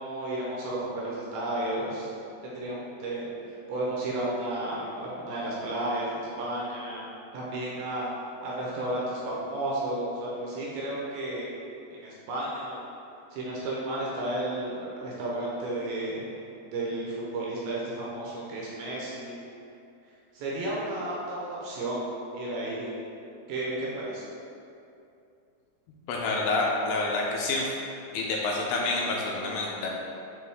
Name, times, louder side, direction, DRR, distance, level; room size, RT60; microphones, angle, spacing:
voice 1, 0.0-2.1 2.4-3.3 3.7-7.0 7.3-8.1 8.4-11.5 11.9-12.8 13.3-16.3 16.7-19.4 20.3-22.9 23.5-24.2, right 1 dB, 75° right, -5 dB, 2.5 m, -32 dB
voice 2, 26.1-27.7 28.1-29.9, left 3 dB, 85° left, -2 dB, 2.5 m, -28 dB
8.6 x 3.6 x 3.5 m, 2.6 s
omnidirectional pair, 4.9 m